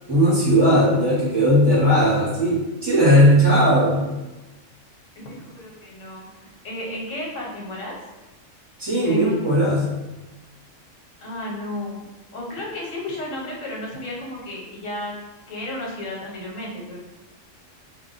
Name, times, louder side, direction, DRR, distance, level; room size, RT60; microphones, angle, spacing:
voice 1, 0.1-4.1 8.8-9.9, equal, 25° right, -6 dB, 0.7 m, -17 dB
voice 2, 5.2-8.0 9.0-9.5 11.2-12.0 12.3-15.1 15.5-17.0, left 1 dB, 80° left, -2 dB, 1.1 m, -33 dB
2.3 x 2.1 x 3.8 m, 1.1 s
omnidirectional pair, 1.3 m